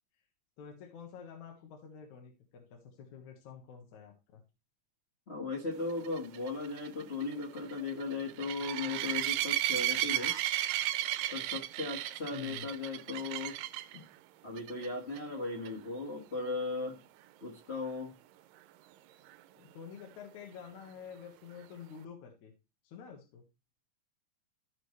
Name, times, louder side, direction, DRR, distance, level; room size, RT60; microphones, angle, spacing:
voice 1, 0.6-4.4 12.3-12.7 19.6-22.5 22.8-23.4, left 7 dB, 65° left, 2.5 m, -49 dB
voice 2, 5.3-10.4 11.3-13.6 13.9-14.0 14.4-17.0 17.4-18.1, left 3 dB, 85° left, 0.5 m, -37 dB
sound 1, 6.0-14.0 14.6-14.9 15.2-15.3 15.7-15.8 19.3-19.4, right 14 dB, 90° right, 2.3 m, -34 dB
14.5 x 5.0 x 3.2 m
omnidirectional pair, 3.8 m